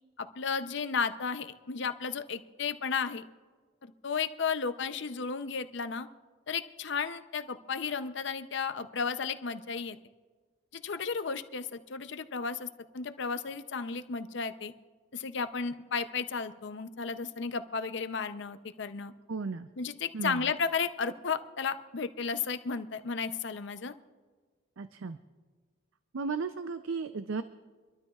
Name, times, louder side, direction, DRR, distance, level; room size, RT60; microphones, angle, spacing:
voice 1, 0.2-3.2 3.8-6.1 6.5-10.0 10.8-12.7 12.9-14.7 15.1-19.1 19.8-23.9, left 5 dB, 60° left, 10 dB, 0.6 m, -33 dB
voice 2, 19.3-19.7 20.1-20.4 24.8-25.2 26.1-27.4, right 4 dB, 75° right, 11 dB, 0.5 m, -34 dB
25.5 x 13.0 x 2.4 m, 1.4 s
head